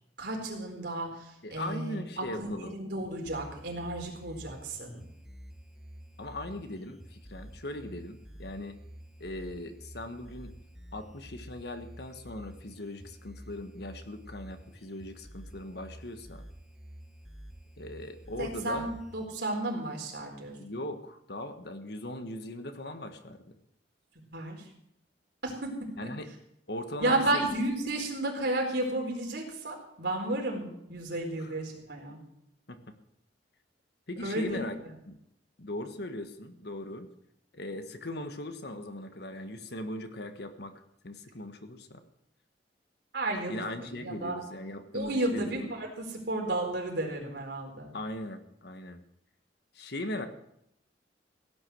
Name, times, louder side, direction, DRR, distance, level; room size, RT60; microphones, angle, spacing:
voice 1, 0.2-5.0 18.4-20.6 24.3-24.7 25.4-25.7 26.0-26.1 27.0-32.2 34.2-34.6 43.1-44.4 44.9-48.0, right 2 dB, 65° right, 1 dB, 4.3 m, -33 dB
voice 2, 1.4-2.8 6.2-8.8 9.2-10.5 10.9-16.5 17.8-18.9 20.6-23.6 26.0-26.3 26.7-27.4 31.4-31.5 32.7-32.9 34.1-34.7 35.1-35.2 35.6-37.1 37.5-40.7 41.0-42.0 43.5-45.7 47.9-49.0 49.7-50.3, left 1 dB, 65° left, 8 dB, 1.5 m, -39 dB
sound 1, 3.3-19.3, equal, 5° right, 1.3 m, -49 dB
16.5 x 9.9 x 6.3 m, 0.78 s
head